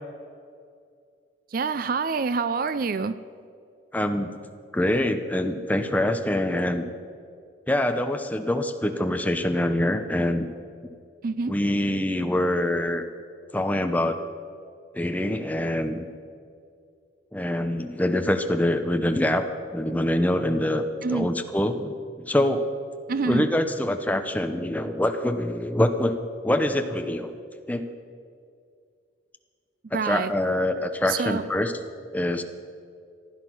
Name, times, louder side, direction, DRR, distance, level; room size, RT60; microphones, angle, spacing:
voice 1, 1.5-3.2 11.2-11.5 21.0-21.3 23.1-23.4 29.9-30.3 31.1-31.4, right 4 dB, 50° right, 14 dB, 0.4 m, -26 dB
voice 2, 3.9-4.4 4.7-6.9 7.7-10.5 11.5-13.0 13.5-14.2 14.9-16.1 17.3-22.7 23.2-26.2 26.4-27.3 27.7-27.9 30.0-31.7 32.1-32.4, left 1 dB, 10° left, 7 dB, 0.7 m, -25 dB
15.5 x 11.0 x 6.1 m, 2.3 s
head